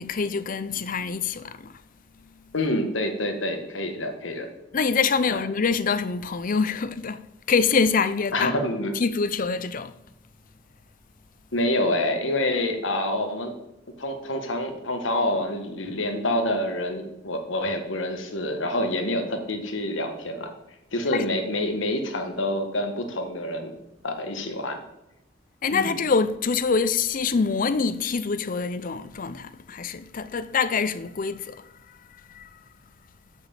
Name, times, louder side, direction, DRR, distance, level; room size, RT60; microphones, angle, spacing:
voice 1, 0.0-1.7 4.7-8.5 9.0-9.9 21.1-21.3 25.6-31.6 32.3-32.5, left 5 dB, 45° left, 0.5 m, -25 dB
voice 2, 2.5-4.5 5.3-5.4 8.3-8.9 11.5-13.5 14.0-20.5 20.9-23.7 24.0-24.8 25.7-25.9, left 1 dB, 80° left, 1.6 m, -27 dB
7.4 x 6.4 x 7.1 m
head